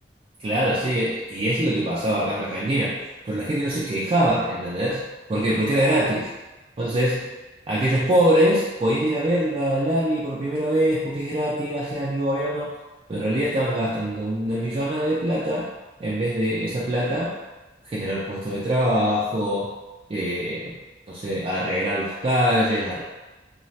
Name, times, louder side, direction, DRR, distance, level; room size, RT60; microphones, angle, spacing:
voice 1, 0.4-3.0 3.2-6.3 6.8-7.3 7.7-12.7 13.1-15.7 16.0-17.4 17.8-19.7 20.1-20.8 21.1-23.0, equal, 30° right, -6 dB, 0.4 m, -23 dB
2.7 x 2.3 x 3.1 m, 1.1 s
head